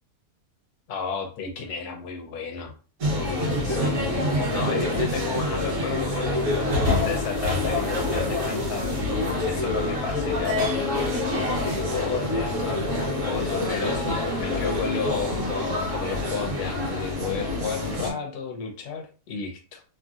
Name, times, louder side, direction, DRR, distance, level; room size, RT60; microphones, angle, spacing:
voice 1, 0.9-2.7 3.6-6.5 7.0-8.9 9.5-15.6 16.0-19.8, left 5 dB, 75° left, 2 dB, 1.2 m, -33 dB
sound 1, 3.0-18.1, left 2 dB, 55° right, 1.1 m, -26 dB
3.0 x 2.6 x 2.3 m, 0.36 s
omnidirectional pair, 1.7 m